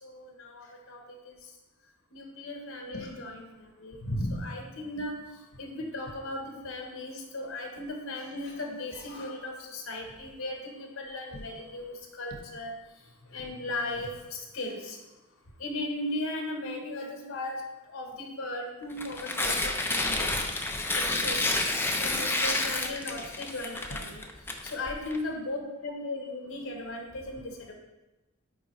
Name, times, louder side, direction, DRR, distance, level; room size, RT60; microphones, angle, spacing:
voice 1, 0.0-1.0 1.3-1.4 2.1-3.4 3.8-5.1 5.6-12.7 13.3-15.0 15.6-17.6 17.9-20.3 20.9-21.4 22.0-24.1 24.7-27.7, left 1 dB, 70° left, 2 dB, 1.1 m, -36 dB
Tearing, 18.9-25.2, left 2 dB, 10° left, 0.5 m, -30 dB
9.0 x 3.7 x 3.1 m, 1.0 s
head